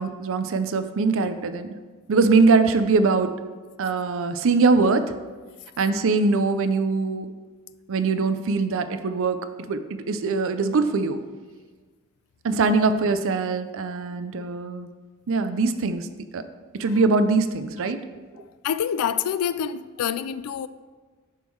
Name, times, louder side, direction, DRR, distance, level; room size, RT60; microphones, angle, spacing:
voice 1, 0.0-1.8 2.1-3.3 3.8-5.1 5.8-7.3 7.9-9.4 9.7-11.2 12.4-14.9 15.3-16.1 16.3-16.4 16.8-18.0, right 4 dB, 65° right, 0.5 m, -22 dB
voice 2, 18.6-20.7, left 8 dB, 80° left, 0.3 m, -26 dB
10.0 x 3.7 x 4.5 m
head